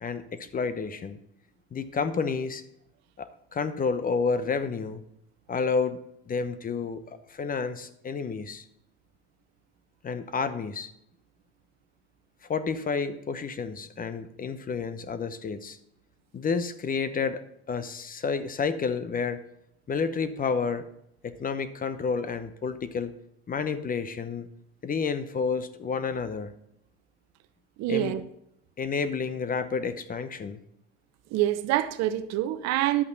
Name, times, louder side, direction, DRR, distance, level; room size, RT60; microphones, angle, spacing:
voice 1, 0.0-1.2 1.7-2.6 3.2-5.0 5.5-7.0 7.3-8.6 10.0-10.9 12.5-15.8 16.3-17.4 17.7-19.4 19.9-20.9 21.2-23.1 23.5-24.5 24.8-26.5 27.9-28.2 28.8-30.6, left 5 dB, 30° left, 0.9 m, -30 dB
voice 2, 27.8-28.2 31.3-33.0, right 13 dB, 60° right, 0.8 m, -26 dB
11.0 x 8.3 x 4.0 m
hypercardioid pair, 85°, 31 cm